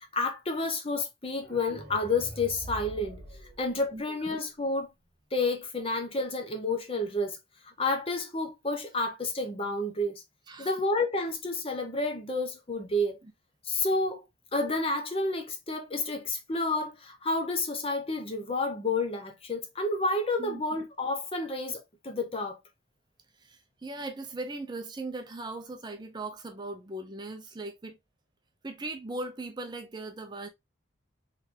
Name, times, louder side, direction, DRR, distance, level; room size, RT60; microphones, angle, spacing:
voice 1, 0.1-3.2 3.6-4.9 5.3-7.4 7.8-10.2 10.6-13.2 13.6-14.2 14.5-22.6, left 2 dB, 25° left, 0.7 m, -30 dB
sound 1, 1.3-4.3, right 1 dB, 40° right, 1.4 m, -44 dB
voice 2, 3.9-4.3 10.5-10.8 13.2-13.3 20.4-20.6 23.3-28.0 28.6-30.5, right 2 dB, 20° right, 0.5 m, -39 dB
3.8 x 3.2 x 2.7 m
head